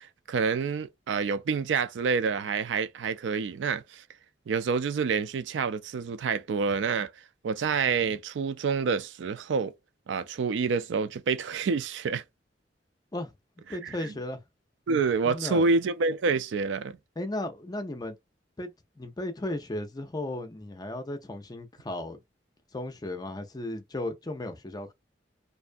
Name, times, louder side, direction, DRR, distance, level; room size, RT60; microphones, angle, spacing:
voice 1, 0.0-4.0 4.5-7.1 7.4-9.7 10.1-12.2 14.9-17.0, right 5 dB, 80° right, 0.4 m, -27 dB
voice 2, 13.7-14.4 15.2-15.7 17.2-18.2 18.6-22.2 22.7-24.9, left 1 dB, 20° left, 0.5 m, -35 dB
2.6 x 2.3 x 2.5 m
head